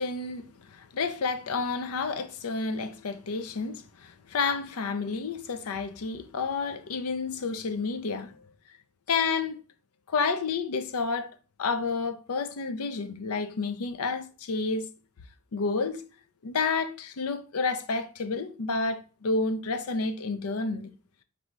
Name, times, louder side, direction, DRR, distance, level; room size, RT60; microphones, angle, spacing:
voice 1, 0.0-8.3 9.1-9.6 10.1-11.3 11.6-14.9 15.5-16.0 16.4-20.9, left 4 dB, 90° left, 0.5 m, -30 dB
4.6 x 2.7 x 3.1 m
head